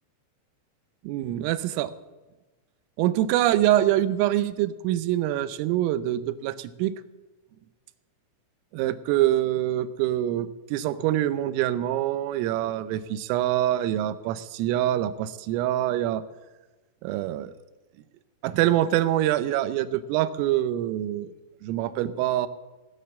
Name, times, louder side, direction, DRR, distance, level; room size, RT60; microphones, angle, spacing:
voice 1, 1.1-1.9 3.0-6.9 8.7-16.2 17.0-17.5 18.4-21.3 21.6-22.5, right 13 dB, 85° right, 13 dB, 3.4 m, -25 dB
16.5 x 9.4 x 7.4 m, 1.2 s
omnidirectional pair, 5.8 m